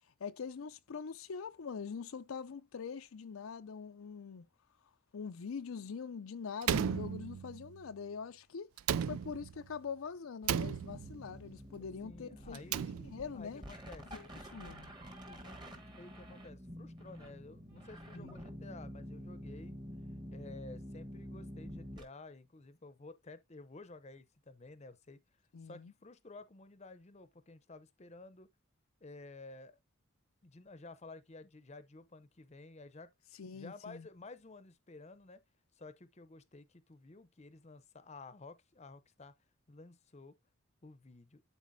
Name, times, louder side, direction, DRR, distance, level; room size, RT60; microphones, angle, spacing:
voice 1, 0.2-4.5 5.1-8.7 9.1-12.6 13.1-13.6 14.1-14.9 18.1-18.3 25.5-25.9 33.4-34.1, left 6 dB, 75° left, 0.5 m, -43 dB
Slam, 6.6-7.8 8.8-9.7 10.4-11.3 12.5-13.4, right 8 dB, 85° right, 0.4 m, -35 dB
sound 1, 10.9-22.0, equal, 20° right, 1.3 m, -48 dB
voice 2, 11.8-13.0 13.3-14.1 15.3-19.8 20.3-25.2 25.6-28.5 29.0-29.8 30.4-33.1 33.5-35.4 35.7-39.3 39.7-40.3 40.8-41.4, left 3 dB, 30° left, 0.7 m, -53 dB
11.5 x 4.1 x 2.7 m
head